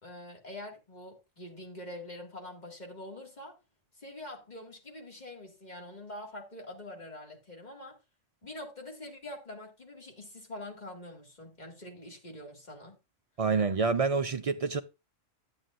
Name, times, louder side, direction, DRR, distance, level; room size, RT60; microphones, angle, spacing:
voice 1, 0.0-3.5 4.0-8.0 8.4-12.9, left 1 dB, 35° left, 2.2 m, -45 dB
voice 2, 13.4-14.8, right 4 dB, 60° right, 0.3 m, -27 dB
11.0 x 8.8 x 2.5 m
omnidirectional pair, 1.3 m